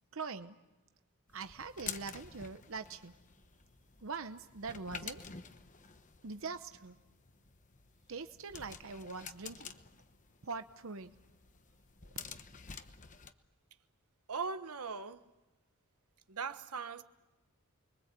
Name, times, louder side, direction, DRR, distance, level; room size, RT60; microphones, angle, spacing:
voice 1, 0.1-0.6 1.3-3.1 4.0-5.3 6.2-7.0 8.1-9.7 10.4-11.2 12.0-12.1, right 4 dB, 60° right, 0.8 m, -43 dB
sound 1, 1.3-13.3, left 6 dB, 35° left, 1.0 m, -50 dB
voice 2, 14.3-15.3 16.3-17.0, right 5 dB, 90° right, 1.2 m, -39 dB
29.5 x 22.5 x 8.3 m
head